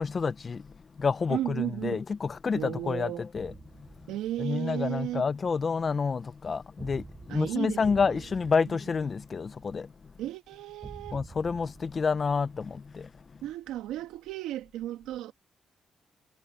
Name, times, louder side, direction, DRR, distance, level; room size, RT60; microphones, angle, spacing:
voice 1, 0.0-3.9 4.4-10.1 11.1-13.4, left 5 dB, 45° left, 1.2 m, -29 dB
voice 2, 1.3-2.0 2.5-3.2 4.1-5.3 7.3-8.1 8.7-8.8 10.2-11.2 13.4-15.3, right 13 dB, 90° right, 2.3 m, -34 dB
sound 1, 3.3-4.7 6.8-9.7 10.8-13.0, right 4 dB, 40° right, 4.0 m, -48 dB
supercardioid pair, 60°, 0 cm